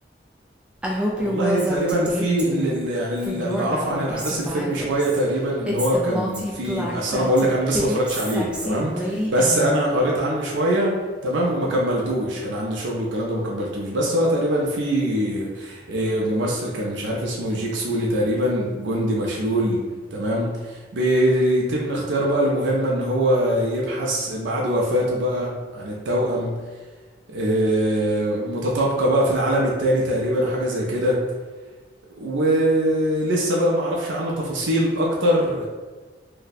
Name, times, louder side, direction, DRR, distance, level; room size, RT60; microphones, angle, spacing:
Female speech woman speaking, 0.8-2.8 3.2-5.2 5.7-9.8, equal, 5° right, 0.3 m, -28 dB
voice 1, 1.1-10.9 11.2-19.8 20.1-26.5 27.3-31.2 32.2-35.7, right 1 dB, 80° right, -3 dB, 0.5 m, -23 dB
2.6 x 2.1 x 4.0 m, 1.4 s
head